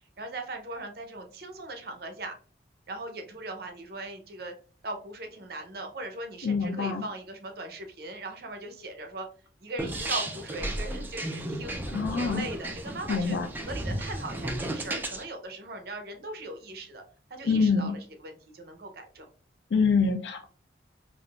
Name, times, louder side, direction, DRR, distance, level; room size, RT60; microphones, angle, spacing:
voice 1, 0.2-2.4 2.9-4.5 4.8-9.3 9.6-13.4 13.6-17.0 17.3-17.9 18.2-19.3, right 2 dB, 55° right, 5 dB, 0.6 m, -39 dB
voice 2, 6.4-7.0 11.9-12.5 13.1-13.5 17.5-17.9 19.7-20.4, left 5 dB, 80° left, 5 dB, 0.4 m, -25 dB
sound 1, 9.8-15.2, right 1 dB, 10° right, 0.3 m, -34 dB
3.6 x 2.4 x 2.3 m, 0.42 s
head